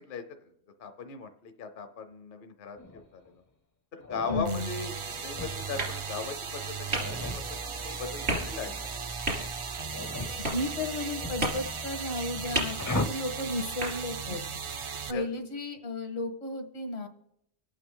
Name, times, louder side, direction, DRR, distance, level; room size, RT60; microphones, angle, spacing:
voice 1, 0.1-0.5 0.8-3.2 3.9-4.9 5.2-7.1 7.4-8.7 15.1-15.2, left 5 dB, 55° left, 8 dB, 0.9 m, -38 dB
sound 1, 2.8-3.3 4.0-6.2 6.9-9.1 9.8-12.0 12.8-13.1, left 2 dB, 20° left, 0.5 m, -38 dB
voice 2, 4.3-4.7 10.2-14.4 15.1-17.1, left 2 dB, 80° left, 6 dB, 1.8 m, -34 dB
sound 2, 4.4-15.1, right 5 dB, 40° right, 0.5 m, -37 dB
sound 3, 5.8-14.9, right 1 dB, 80° right, 3.7 m, -37 dB
26.0 x 8.7 x 3.8 m, 0.78 s
omnidirectional pair, 1.1 m